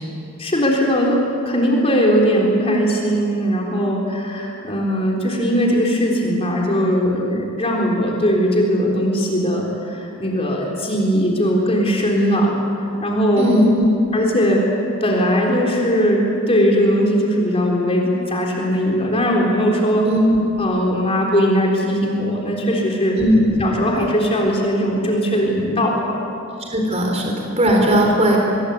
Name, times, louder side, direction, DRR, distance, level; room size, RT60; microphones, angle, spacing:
voice 1, 0.4-13.5 14.1-14.6 15.0-20.1 20.6-23.2 23.6-26.2, equal, 30° left, -1 dB, 3.9 m, -19 dB
voice 2, 13.4-13.9 20.0-20.2 23.1-23.7 26.6-28.4, equal, 30° right, 0 dB, 4.1 m, -17 dB
24.5 x 22.0 x 8.4 m, 2.7 s
head